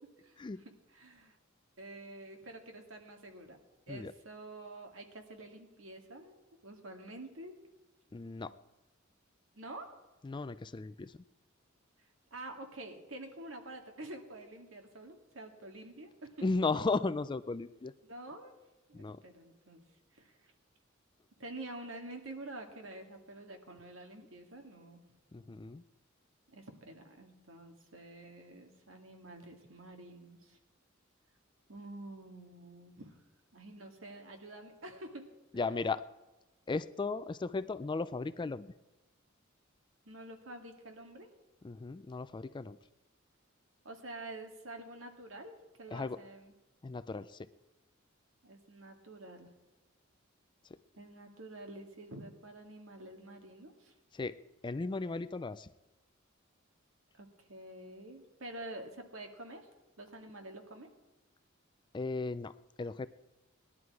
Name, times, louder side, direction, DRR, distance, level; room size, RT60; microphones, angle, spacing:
voice 1, 0.2-1.4 1.8-3.6 3.9-7.6 9.5-9.9 12.3-16.5 18.0-18.5 18.9-19.8 20.1-20.5 21.4-25.0 25.4-25.6 26.5-30.6 31.7-33.2 33.5-35.3 40.1-41.3 43.8-46.6 48.4-49.5 51.0-53.9 57.1-59.7 60.0-60.9, right 2 dB, 70° right, 4 dB, 2.0 m, -48 dB
voice 2, 8.1-8.5 10.2-11.1 16.4-17.9 18.9-19.2 25.3-25.8 35.5-36.0 36.7-38.7 41.6-42.8 45.9-46.2 46.8-47.3 54.1-54.3 54.6-55.7 61.9-62.5 62.8-63.1, left 3 dB, 25° left, 13 dB, 0.4 m, -35 dB
18.5 x 11.0 x 4.7 m, 1.0 s
head